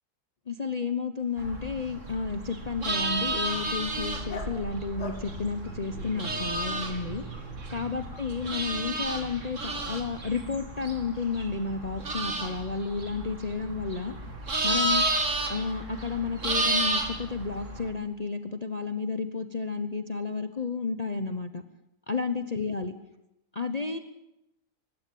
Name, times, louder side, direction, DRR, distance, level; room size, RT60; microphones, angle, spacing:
voice 1, 0.5-7.2 7.7-14.2 14.6-15.1 15.5-21.6 22.1-22.9 23.5-24.0, left 4 dB, 30° left, 8 dB, 0.9 m, -32 dB
Dog, 1.2-6.5, left 4 dB, 70° left, 2.7 m, -47 dB
sound 1, 1.4-17.9, right 2 dB, 50° right, 2.9 m, -32 dB
20.5 x 16.0 x 8.6 m, 0.88 s
omnidirectional pair, 1.7 m